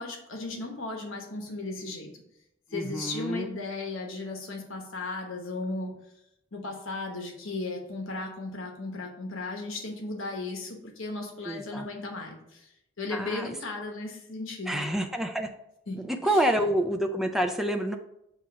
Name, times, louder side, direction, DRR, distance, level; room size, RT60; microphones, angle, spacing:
voice 1, 0.0-2.1 2.7-5.9 6.5-12.7 13.0-14.9 15.9-16.0 16.2-16.4, left 3 dB, 70° left, 1 dB, 1.1 m, -36 dB
voice 2, 2.7-3.5 11.5-11.9 13.1-13.5 14.7-15.5 15.9-18.0, right 1 dB, ahead, 4 dB, 0.4 m, -28 dB
7.2 x 2.5 x 5.7 m, 0.82 s
head